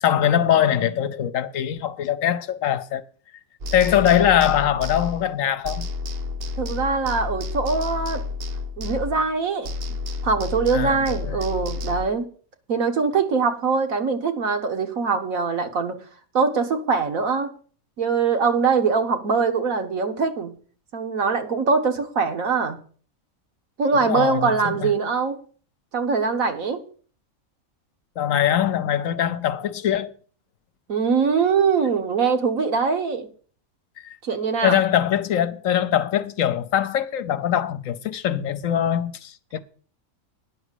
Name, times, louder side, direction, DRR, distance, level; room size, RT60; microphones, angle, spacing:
voice 1, 0.0-3.0 3.7-5.9 10.7-11.4 23.9-24.9 28.2-30.1 34.0-34.2 34.6-39.6, left 10 dB, 70° left, 1.1 m, -22 dB
sound 1, 3.6-5.4 5.6-9.4 9.6-12.1, left 3 dB, 55° right, 0.8 m, -31 dB
voice 2, 6.6-8.2 8.8-9.7 10.2-12.3 12.7-16.0 16.3-17.5 18.0-20.5 20.9-22.8 23.8-25.4 25.9-26.8 30.9-33.3 34.2-34.8, right 5 dB, 75° right, 1.7 m, -22 dB
10.0 x 6.1 x 8.3 m
omnidirectional pair, 1.5 m